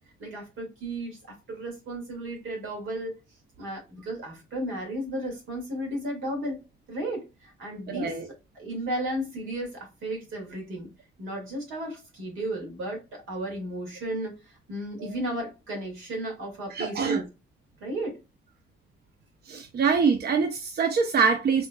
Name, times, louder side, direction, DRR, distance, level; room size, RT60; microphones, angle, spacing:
voice 1, 0.2-3.2 3.6-6.6 6.9-8.2 8.5-10.9 11.2-17.3 17.8-18.2, right 1 dB, 85° right, 2.1 m, -34 dB
voice 2, 7.9-8.2 16.7-17.2 19.5-21.7, right 5 dB, 55° right, 0.6 m, -24 dB
3.7 x 3.5 x 2.3 m
cardioid pair, 90°, 20 cm